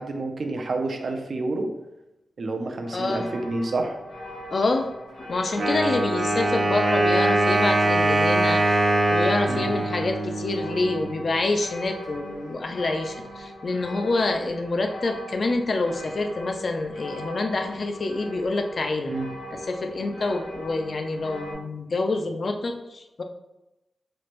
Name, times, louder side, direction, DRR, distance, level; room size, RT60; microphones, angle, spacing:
voice 1, 0.0-1.7 2.4-3.9 9.5-9.7 19.0-19.3, right 2 dB, 55° right, 4 dB, 0.4 m, -29 dB
sound 1, 2.8-21.5, equal, 65° left, 1.0 m, -40 dB
voice 2, 2.9-3.3 4.5-4.9 5.3-8.8 9.1-19.1 19.5-23.2, left 2 dB, 45° left, 5 dB, 0.3 m, -27 dB
Wind instrument woodwind instrument, 5.6-11.2, right 2 dB, 75° right, 0.9 m, -22 dB
3.1 x 2.4 x 3.1 m, 0.93 s
wide cardioid pair, 160°, 0 cm